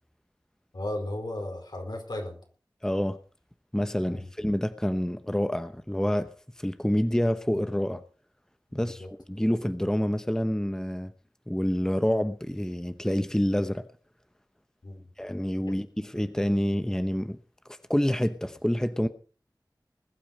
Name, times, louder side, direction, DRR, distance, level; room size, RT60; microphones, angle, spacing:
voice 1, 0.7-2.4 4.0-4.3 8.7-9.1 14.8-15.1 15.6-15.7, left 1 dB, 75° left, 4.8 m, -36 dB
voice 2, 2.8-3.2 3.7-6.3 6.6-8.0 8.7-11.1 11.5-13.8 15.2-17.4 17.9-19.1, equal, 5° left, 1.0 m, -27 dB
20.5 x 8.7 x 5.4 m
wide cardioid pair, 55°, 7 cm